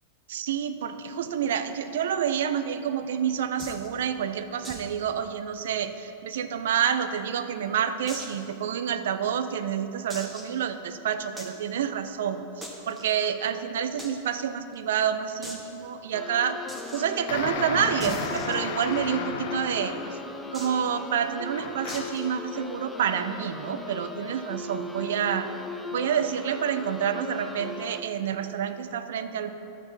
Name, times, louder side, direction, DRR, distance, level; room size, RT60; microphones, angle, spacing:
voice 1, 0.3-16.6 16.9-20.0 20.5-25.5 25.9-29.5, right 8 dB, 60° right, 10 dB, 0.5 m, -28 dB
sound 1, 3.6-3.9 4.6-4.9 5.2-5.3 5.7-5.8 6.4-7.2 8.1-8.4 9.0-9.1 10.1-10.6 11.4-11.6 12.6-13.0 14.0-14.1 14.4-14.5 14.7-14.8 15.4-15.7 16.7-17.0 18.0-19.1 20.5-20.9 21.9-22.3, equal, 5° right, 1.3 m, -40 dB
sound 2, 16.1-28.0, left 2 dB, 10° left, 0.6 m, -38 dB
sound 3, 17.3-20.3 21.5-22.3, left 7 dB, 50° left, 0.6 m, -34 dB
11.5 x 7.7 x 4.1 m, 2.9 s
figure-of-eight pair, 90°, 0 cm